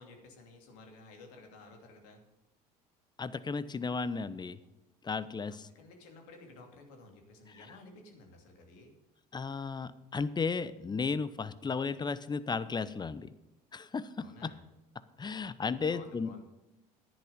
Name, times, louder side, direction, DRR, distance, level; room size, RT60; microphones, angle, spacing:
voice 1, 0.0-2.2 5.5-8.9 14.2-14.6 15.9-16.4, left 3 dB, 65° left, 3 dB, 2.8 m, -53 dB
voice 2, 3.2-4.6 5.0-5.7 7.5-7.7 9.3-13.3 13.7-14.5 15.2-16.4, left 5 dB, 20° left, 15 dB, 0.8 m, -34 dB
11.0 x 10.5 x 5.3 m, 0.95 s
hypercardioid pair, 65°, 20 cm